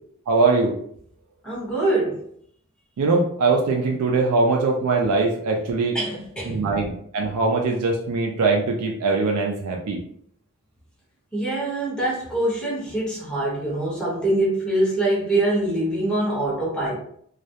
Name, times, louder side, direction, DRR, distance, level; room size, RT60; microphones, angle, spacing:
voice 1, 0.3-0.8 3.0-6.0 6.5-10.0, right 3 dB, 90° right, 1 dB, 0.4 m, -21 dB
voice 2, 1.4-2.2 5.9-6.6 11.3-17.0, right 1 dB, 5° left, -7 dB, 0.9 m, -24 dB
2.3 x 2.0 x 2.7 m, 0.64 s
head